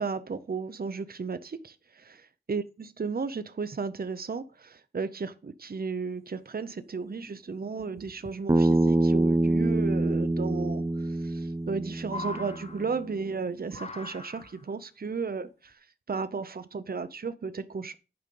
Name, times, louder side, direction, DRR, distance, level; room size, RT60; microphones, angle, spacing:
voice 1, 0.0-2.2 2.5-15.8 16.1-18.0, right 5 dB, 60° right, 0.6 m, -34 dB
sound 1, 6.7-6.8 7.1-7.2 7.8-8.3 9.9-10.0 11.2-11.7 12.0-13.2 13.7-14.7 15.7-15.8, left 2 dB, 40° left, 1.1 m, -41 dB
Bass guitar, 8.5-12.7, right 2 dB, 20° right, 0.5 m, -25 dB
9.5 x 5.2 x 5.3 m
wide cardioid pair, 65°, 17 cm